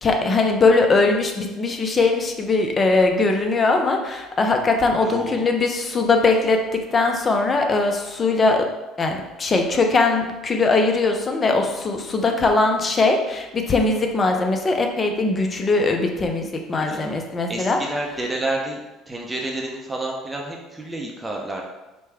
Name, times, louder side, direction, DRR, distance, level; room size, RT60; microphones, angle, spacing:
voice 1, 0.0-8.7 9.0-17.8, left 3 dB, 30° left, 4 dB, 0.7 m, -20 dB
voice 2, 5.0-5.4 16.9-17.1 17.5-18.8 19.1-21.6, right 2 dB, 15° right, 0 dB, 0.7 m, -29 dB
5.0 x 2.2 x 3.5 m, 1.1 s
supercardioid pair, 85°, 0 cm